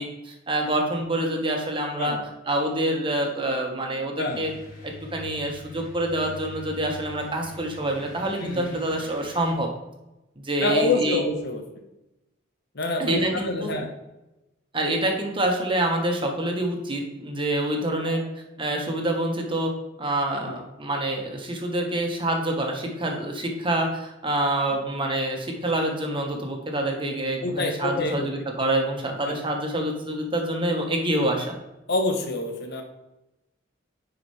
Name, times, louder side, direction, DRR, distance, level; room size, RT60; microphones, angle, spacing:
voice 1, 0.0-2.2 2.5-4.5 4.8-9.7 10.4-11.2 13.0-13.7 14.7-18.2 18.6-19.7 20.0-31.6, right 1 dB, 25° right, 1 dB, 1.4 m, -26 dB
voice 2, 4.2-4.5 8.4-8.8 10.6-11.6 12.7-13.9 18.0-18.2 20.4-20.6 27.4-28.3 29.3-29.4 31.9-32.8, left 2 dB, 60° left, 4 dB, 1.2 m, -27 dB
sound 1, 4.3-9.5, left 1 dB, 40° left, 2.3 m, -44 dB
9.9 x 5.0 x 3.3 m, 0.97 s
head